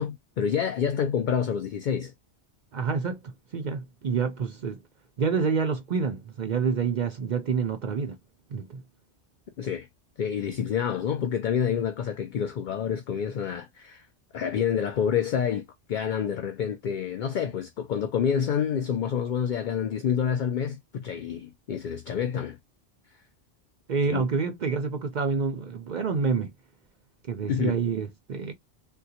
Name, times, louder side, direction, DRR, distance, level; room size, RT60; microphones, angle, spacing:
voice 1, 0.0-2.1 9.6-9.9 10.2-14.1 14.3-22.6 24.1-24.3 27.5-27.8, left 8 dB, 60° left, 0.5 m, -28 dB
voice 2, 2.7-4.8 5.2-8.2 8.5-8.8 23.9-26.5 27.3-28.5, right 5 dB, 55° right, 0.5 m, -28 dB
3.7 x 2.2 x 2.7 m
omnidirectional pair, 1.1 m